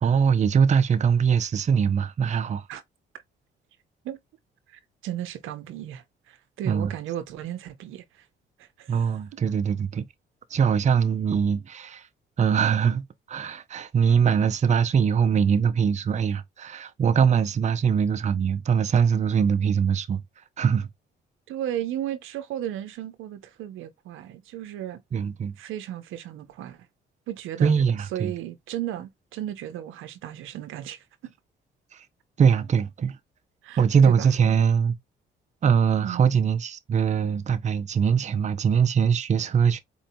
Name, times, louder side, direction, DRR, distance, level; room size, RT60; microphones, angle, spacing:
voice 1, 0.0-2.7 6.6-6.9 8.9-10.0 10.5-12.1 12.4-20.2 20.6-20.9 25.1-25.6 27.6-28.3 31.9-32.0 32.4-33.2 33.8-34.9 35.6-39.8, right 7 dB, 35° right, 0.5 m, -22 dB
voice 2, 4.7-8.3 8.6-9.1 21.5-25.0 25.6-26.9 27.3-27.7 28.1-31.3 33.6-34.3 36.0-36.2, right 12 dB, 90° right, 0.6 m, -35 dB
4.3 x 2.7 x 2.6 m
cardioid pair, 90°, 20 cm